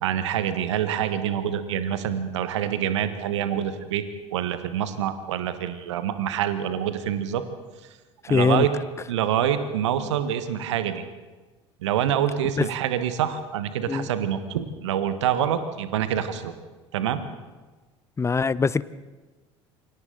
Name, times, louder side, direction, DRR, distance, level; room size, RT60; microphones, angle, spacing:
voice 1, 0.0-4.0 4.3-7.4 8.3-8.7 9.1-11.0 11.8-16.5 16.9-17.2, right 9 dB, 70° right, 11 dB, 1.4 m, -26 dB
voice 2, 8.3-8.7 12.6-12.7 13.9-14.1 18.2-18.8, left 5 dB, 20° left, 19 dB, 0.7 m, -22 dB
28.0 x 24.5 x 3.9 m, 1.3 s
figure-of-eight pair, 65°, 15 cm